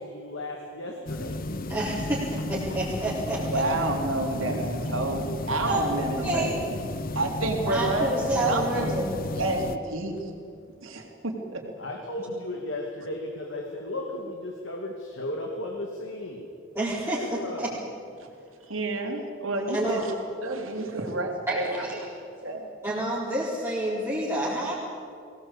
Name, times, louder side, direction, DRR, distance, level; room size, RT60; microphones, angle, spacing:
voice 1, 0.0-1.4 7.7-8.1 11.8-16.5 17.1-17.8 20.9-21.1, left 1 dB, 65° left, 1 dB, 2.4 m, -35 dB
sound 1, 1.1-9.8, left 2 dB, 45° left, 0.9 m, -33 dB
voice 2, 1.7-3.6 5.7-6.7 7.7-9.1 16.7-17.7 19.7-20.0 21.5-22.0 22.8-24.7, right 1 dB, 15° right, -9 dB, 4.1 m, -29 dB
voice 3, 3.5-6.5 7.2-8.9 9.4-10.1 10.8-11.6 18.7-20.1 20.4-21.6 22.4-22.7, right 2 dB, 85° right, 2 dB, 3.7 m, -29 dB
22.5 x 19.0 x 8.5 m, 2.4 s
head